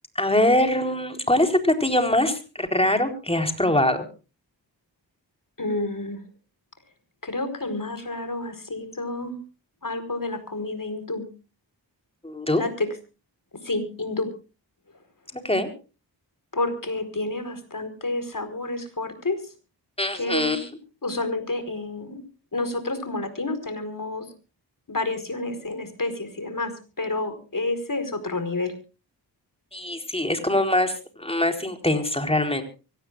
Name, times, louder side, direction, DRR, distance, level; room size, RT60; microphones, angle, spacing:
voice 1, 0.2-4.0 12.2-12.6 15.4-15.7 20.0-20.6 29.7-32.6, left 1 dB, 15° left, 5 dB, 4.1 m, -23 dB
voice 2, 5.6-6.2 7.2-9.4 9.8-11.3 12.6-12.9 13.6-14.3 16.5-19.4 20.1-20.7 21.0-22.2 22.5-24.3 24.9-28.7, left 2 dB, 45° left, 10 dB, 4.7 m, -29 dB
24.5 x 18.0 x 2.5 m, 0.34 s
cardioid pair, 45°, 44 cm